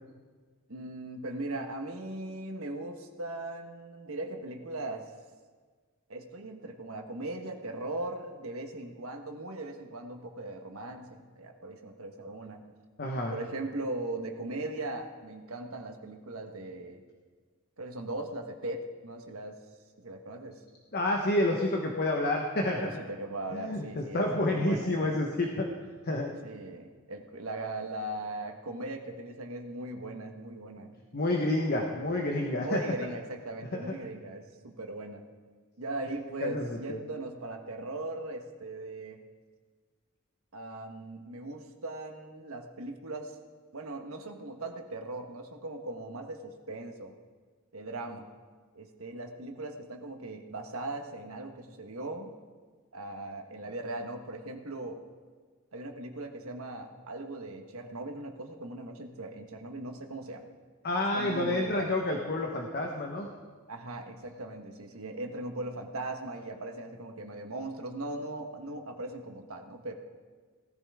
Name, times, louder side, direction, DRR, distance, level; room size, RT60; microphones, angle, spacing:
voice 1, 0.7-5.1 6.1-12.6 13.3-17.0 17.8-19.6 20.0-20.6 22.7-25.2 26.4-31.0 32.5-35.2 35.8-39.2 40.5-43.4 43.7-47.1 47.7-48.3 48.7-52.3 52.9-55.0 55.7-60.5 61.1-61.9 63.7-69.9, right 2 dB, 70° right, 4 dB, 1.4 m, -39 dB
voice 2, 13.0-13.3 20.9-22.9 23.5-25.7 26.0-26.3 31.1-32.8 33.7-33.9 36.4-37.0 60.8-63.3, left 1 dB, 50° left, 1 dB, 1.2 m, -29 dB
18.0 x 13.5 x 3.6 m, 1.5 s
head